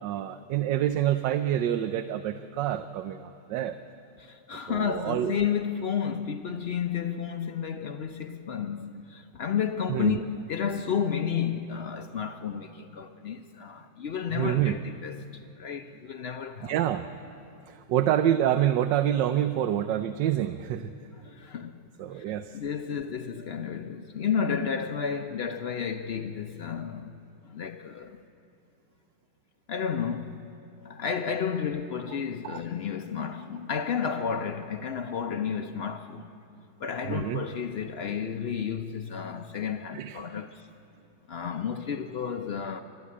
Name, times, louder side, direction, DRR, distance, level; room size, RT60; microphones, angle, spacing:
voice 1, 0.0-3.8 4.7-5.4 9.9-10.2 14.3-14.8 16.6-17.1 17.7-20.9 22.0-22.6 32.4-32.6 37.0-37.5 39.9-40.2, right 11 dB, 80° right, 1.3 m, -27 dB
voice 2, 4.2-15.2 15.6-16.7 21.2-21.8 22.1-27.2 27.5-28.2 29.7-30.5 30.8-36.3 36.8-40.7 41.3-42.8, left 7 dB, 90° left, 0.5 m, -32 dB
29.5 x 13.5 x 8.5 m
omnidirectional pair, 2.0 m